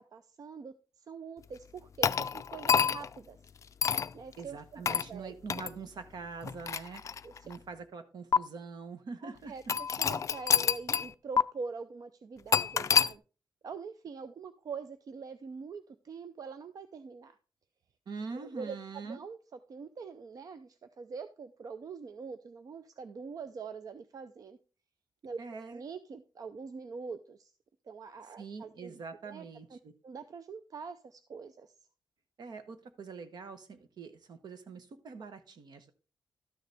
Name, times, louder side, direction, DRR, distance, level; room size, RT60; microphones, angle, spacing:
voice 1, 0.0-3.4 4.1-5.3 7.2-7.5 9.2-13.2 13.6-17.4 18.3-19.4 19.7-24.6 25.2-25.4 25.7-27.5 27.9-29.8 30.0-31.7, right 5 dB, 55° right, 11 dB, 0.5 m, -44 dB
sound 1, 2.0-3.2 3.8-4.1 4.9-5.1 5.5-5.7 6.4-7.6 8.3-8.4 9.7-11.1 11.4-11.5 12.5-13.1, left 7 dB, 45° left, 0.3 m, -27 dB
voice 2, 4.4-7.0 7.4-9.5 18.1-19.2 25.4-25.8 28.4-29.9 32.4-35.9, right 5 dB, 70° right, 10 dB, 1.1 m, -44 dB
12.5 x 6.6 x 3.4 m, 0.35 s
wide cardioid pair, 130°, 7 cm